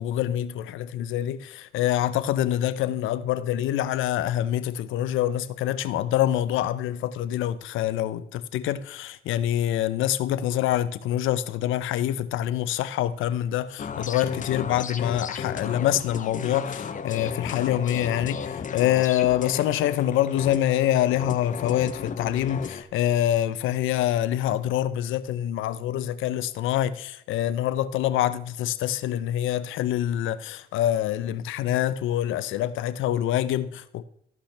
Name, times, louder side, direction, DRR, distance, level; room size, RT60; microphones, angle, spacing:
voice 1, 0.0-34.0, left 12 dB, 85° left, 0.6 m, -25 dB
sound 1, 13.8-22.8, left 6 dB, 40° left, 0.8 m, -34 dB
14.5 x 5.7 x 3.3 m
cardioid pair, 90°, 20 cm